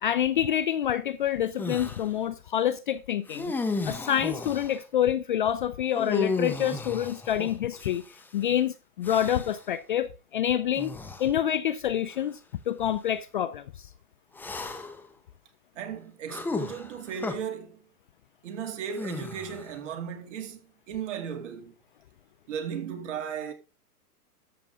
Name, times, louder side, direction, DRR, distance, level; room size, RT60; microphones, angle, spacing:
voice 1, 0.0-3.5 3.9-8.0 8.3-10.9 11.2-12.4 12.7-13.9, left 10 dB, 35° left, 0.4 m, -27 dB
sound 1, 1.6-2.1 3.3-4.8 5.9-8.3 9.0-9.7 10.8-11.3 12.1-12.2 14.4-15.1 16.3-17.4 18.9-19.8, left 3 dB, 5° left, 0.7 m, -34 dB
voice 2, 15.8-17.9 18.4-21.7 22.5-23.5, right 7 dB, 50° right, 2.6 m, -36 dB
13.5 x 6.7 x 3.6 m
hypercardioid pair, 140°, 45 cm